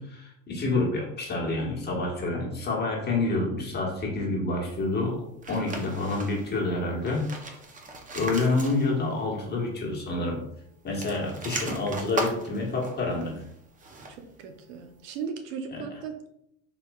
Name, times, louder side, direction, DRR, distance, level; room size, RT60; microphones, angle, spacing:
voice 1, 0.0-7.3 8.1-10.4 10.8-13.4 15.7-15.8, left 2 dB, 25° left, -2 dB, 1.2 m, -28 dB
sound 1, 5.4-6.6 7.0-9.2 9.5-9.6 10.8-14.3, right 2 dB, 20° right, 0.6 m, -38 dB
voice 2, 14.1-16.3, right 6 dB, 85° right, 6 dB, 0.6 m, -37 dB
3.9 x 2.9 x 2.3 m, 0.75 s
hypercardioid pair, 90°, 38 cm